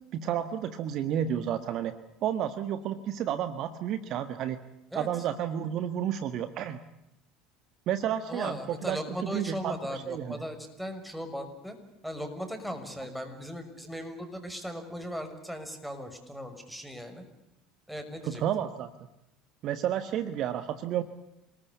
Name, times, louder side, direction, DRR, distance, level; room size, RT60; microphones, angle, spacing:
voice 1, 0.1-1.9 2.2-4.6 4.9-6.8 7.9-10.4 18.2-18.9 19.6-21.0, right 10 dB, 50° right, 12 dB, 1.5 m, -31 dB
voice 2, 8.3-11.8 12.0-17.2 17.9-18.4, equal, ahead, 6 dB, 6.1 m, -38 dB
28.0 x 19.5 x 8.5 m, 0.88 s
figure-of-eight pair, 70°, 0 cm